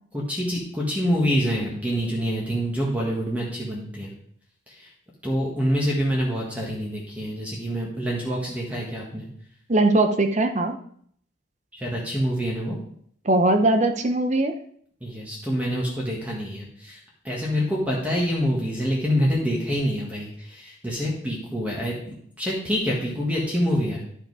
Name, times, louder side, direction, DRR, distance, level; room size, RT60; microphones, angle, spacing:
voice 1, 0.1-4.1 4.7-4.9 5.2-9.3 11.7-12.8 15.0-21.9 22.4-24.0, equal, 5° right, -4 dB, 1.6 m, -26 dB
voice 2, 9.7-10.7 13.3-14.6, right 2 dB, 35° right, 7 dB, 0.7 m, -20 dB
11.5 x 5.0 x 4.8 m, 0.64 s
head